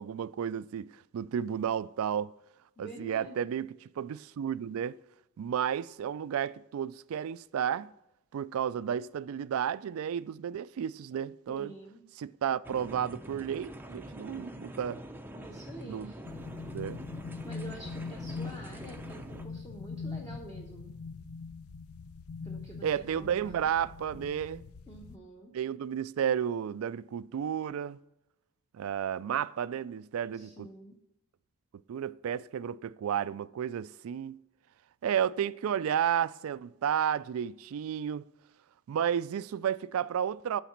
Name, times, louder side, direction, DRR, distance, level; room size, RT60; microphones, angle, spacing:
voice 1, 0.0-2.3 2.8-5.0 5.4-7.9 8.3-11.7 12.2-15.0 15.9-16.1 16.7-17.0 22.8-24.6 25.5-28.0 28.7-30.7 31.9-34.4 35.0-38.2 38.9-40.6, right 8 dB, 70° right, 0.3 m, -32 dB
voice 2, 2.8-3.4 11.5-12.0 15.4-16.2 17.4-20.9 22.4-23.7 24.9-25.5 30.3-31.0, right 1 dB, 15° left, 0.9 m, -48 dB
sound 1, 12.6-19.5, right 1 dB, 10° right, 0.5 m, -45 dB
sound 2, 16.2-25.2, left 4 dB, 80° left, 0.5 m, -42 dB
9.2 x 4.0 x 5.8 m
head